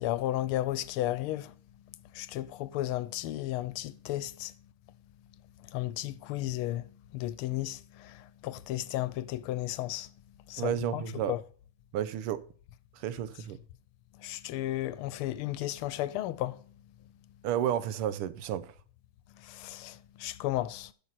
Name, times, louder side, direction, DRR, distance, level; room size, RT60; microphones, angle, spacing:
voice 1, 0.0-1.5 1.9-4.5 5.6-10.1 10.5-11.4 14.2-16.6 19.4-20.9, left 14 dB, 85° left, 1.5 m, -34 dB
voice 2, 10.6-11.3 11.9-12.4 13.0-13.6 17.4-18.7, right 10 dB, 90° right, 1.6 m, -31 dB
12.0 x 6.3 x 4.1 m
omnidirectional pair, 2.4 m